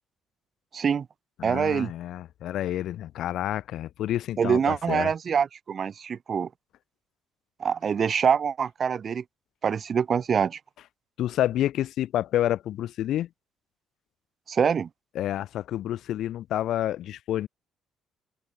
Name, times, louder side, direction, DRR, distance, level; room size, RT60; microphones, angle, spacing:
voice 1, 0.7-1.1 1.4-1.9 4.4-6.5 7.6-9.2 9.6-10.6 14.5-14.9, right 7 dB, 40° right, 0.9 m, -25 dB
voice 2, 1.4-5.1 11.2-13.3 15.2-17.5, left 12 dB, 70° left, 1.9 m, -29 dB
open air
cardioid pair, 95°, 0 cm